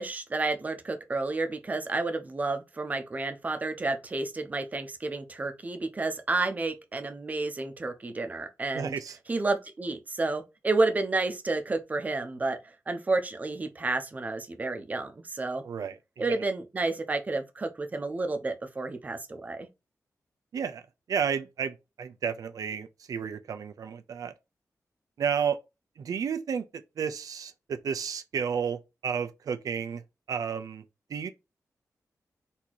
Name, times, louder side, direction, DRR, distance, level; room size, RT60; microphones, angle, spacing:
voice 1, 0.0-8.9 9.3-15.6 16.2-19.7, right 3 dB, 25° right, 0.6 m, -30 dB
voice 2, 8.7-9.2 15.6-16.0 20.5-20.8 21.1-24.3 25.2-25.6 26.0-30.0 30.3-30.8 31.1-31.3, right 7 dB, 90° right, 0.5 m, -32 dB
4.2 x 2.8 x 4.5 m
wide cardioid pair, 170°, 6 cm